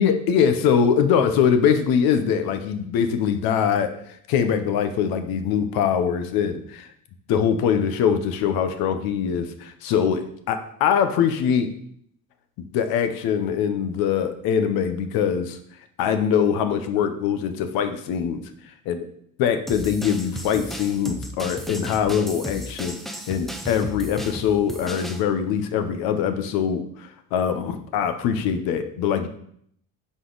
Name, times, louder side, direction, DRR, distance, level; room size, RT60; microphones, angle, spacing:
voice 1, 0.0-6.9 7.3-11.7 12.6-15.6 16.0-18.4 18.9-19.0 19.4-23.0 23.3-29.3, left 7 dB, 80° left, 9 dB, 0.9 m, -23 dB
sound 1, 19.7-25.2, equal, ahead, 0.4 m, -35 dB
11.0 x 4.1 x 3.9 m, 0.68 s
cardioid pair, 165°, 35 cm